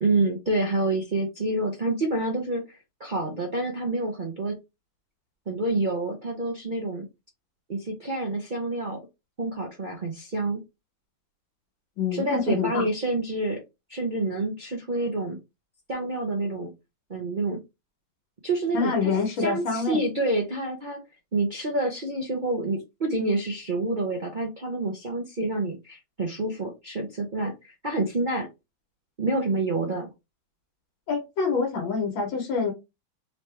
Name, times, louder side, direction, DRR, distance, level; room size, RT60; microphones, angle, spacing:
voice 1, 0.0-4.6 5.5-7.1 7.7-9.0 9.4-10.6 12.1-13.6 13.9-15.4 15.9-16.7 17.1-17.6 18.4-21.0 21.3-28.5 29.2-30.1, right 2 dB, 50° right, 0.6 m, -28 dB
voice 2, 12.0-12.9 18.7-20.0 31.1-32.7, left 5 dB, 80° left, 1.9 m, -26 dB
4.1 x 2.9 x 3.3 m
omnidirectional pair, 2.1 m